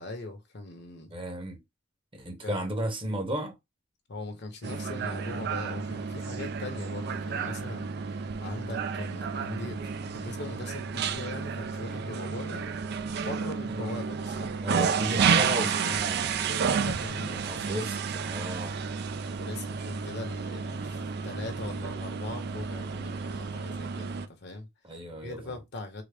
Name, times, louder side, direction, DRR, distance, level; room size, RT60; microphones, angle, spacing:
voice 1, 0.0-1.1 2.4-2.7 4.1-12.7 13.2-14.5 15.3-15.9 16.8-17.8 19.4-24.7 25.2-26.0, left 2 dB, 55° left, 0.9 m, -41 dB
voice 2, 1.1-1.6 2.1-3.5 14.6-16.5 17.5-18.8 24.8-25.6, right 1 dB, 25° right, 0.9 m, -34 dB
sound 1, 4.6-24.3, right 6 dB, 50° right, 0.4 m, -31 dB
3.8 x 2.1 x 3.3 m
head